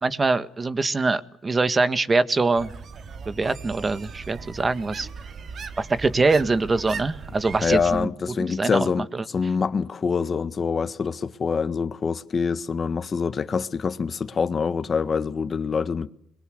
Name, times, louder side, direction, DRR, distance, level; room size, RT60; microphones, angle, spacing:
voice 1, 0.0-2.7 3.3-5.1 5.8-8.1 8.4-9.2, right 3 dB, 30° right, 1.8 m, -23 dB
sound 1, 2.5-8.1, right 5 dB, 55° right, 2.4 m, -38 dB
voice 2, 7.6-9.1 9.3-16.1, left 5 dB, 45° left, 1.6 m, -25 dB
29.5 x 22.5 x 8.0 m
cardioid pair, 90°, 0 cm